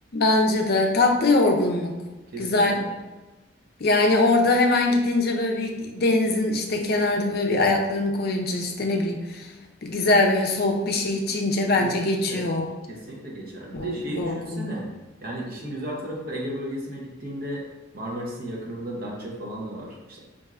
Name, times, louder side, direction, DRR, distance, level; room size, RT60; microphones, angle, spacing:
voice 1, 0.1-2.0 2.4-2.8 3.8-9.5 9.8-12.7 13.7-14.7, left 2 dB, 50° left, 2 dB, 0.5 m, -22 dB
voice 2, 2.3-2.9 11.8-12.5 12.9-14.9 15.2-17.6 17.9-20.2, right 1 dB, 45° right, -3 dB, 0.8 m, -34 dB
4.3 x 2.6 x 2.4 m, 1.1 s
head